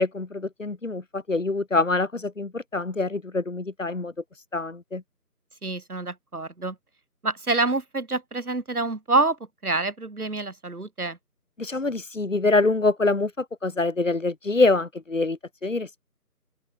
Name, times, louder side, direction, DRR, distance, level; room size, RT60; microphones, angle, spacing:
voice 1, 0.0-4.1 4.5-5.0 11.6-15.9, left 3 dB, 55° left, 1.3 m, -25 dB
voice 2, 5.6-6.8 7.2-9.4 9.6-11.2, right 3 dB, 65° right, 2.4 m, -26 dB
open air
figure-of-eight pair, 170°, 47 cm